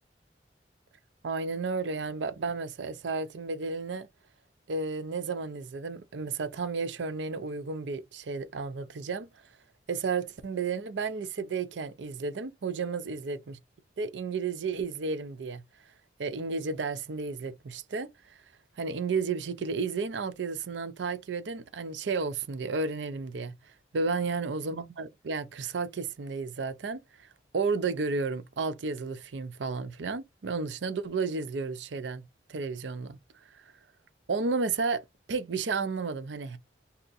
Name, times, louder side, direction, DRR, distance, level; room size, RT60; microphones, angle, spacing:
voice 1, 1.2-4.1 4.7-9.3 9.9-13.6 14.0-15.6 16.2-18.4 18.8-23.5 23.9-27.3 27.5-32.2 32.5-33.2 33.5-33.6 34.3-35.0 35.3-36.6, right 4 dB, 85° right, 0.5 m, -32 dB
2.8 x 2.6 x 3.8 m
head